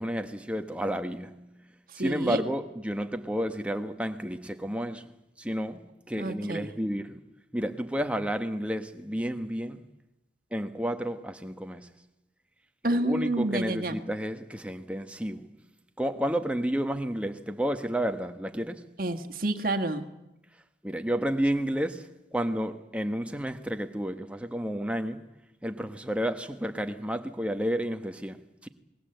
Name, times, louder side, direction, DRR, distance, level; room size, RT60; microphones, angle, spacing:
voice 1, 0.0-1.5 1.9-7.2 7.5-9.8 10.5-11.9 12.9-15.5 16.0-18.9 20.8-25.3 25.6-28.7, equal, 5° right, 1.3 m, -31 dB
voice 2, 2.0-2.4 6.2-6.7 12.8-14.0 19.0-20.0, right 1 dB, 50° right, 1.8 m, -29 dB
27.5 x 21.0 x 8.0 m
head